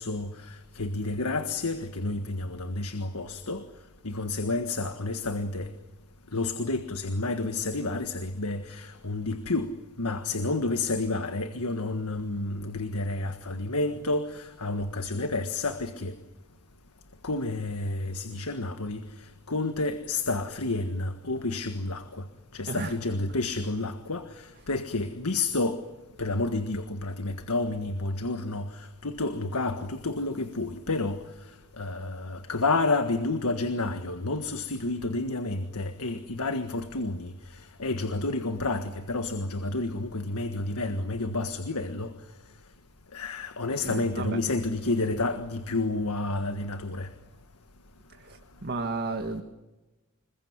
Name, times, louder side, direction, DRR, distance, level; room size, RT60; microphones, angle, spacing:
voice 1, 0.0-3.6 4.0-5.7 6.3-9.7 10.0-16.1 17.2-19.0 19.5-22.2 22.5-25.8 26.2-31.2 31.8-37.3 37.8-42.1 43.1-47.1, left 2 dB, 85° left, 1.6 m, -30 dB
voice 2, 43.8-44.4 48.2-49.4, right 3 dB, 45° right, 1.8 m, -33 dB
27.0 x 22.0 x 9.6 m
head